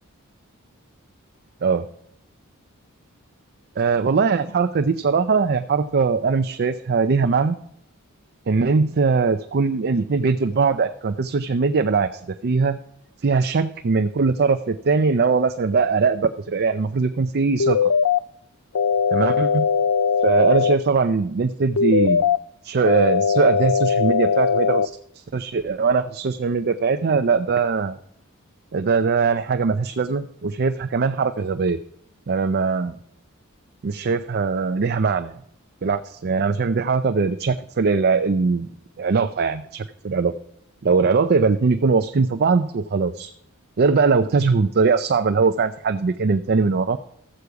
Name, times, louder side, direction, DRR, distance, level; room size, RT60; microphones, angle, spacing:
voice 1, 3.8-7.6 8.5-12.8 13.2-17.9 19.1-19.7 20.2-22.2 22.6-24.9 25.3-28.0 28.7-31.8 32.3-33.0 33.8-35.3 35.8-38.7 39.0-40.3 40.8-43.3 43.8-47.0, right 4 dB, 50° right, 8 dB, 0.5 m, -21 dB
sound 1, 17.6-18.2 18.7-20.7 21.8-22.4 22.9-24.9, left 6 dB, 70° left, 0.5 m, -20 dB
13.5 x 8.1 x 4.8 m, 0.69 s
head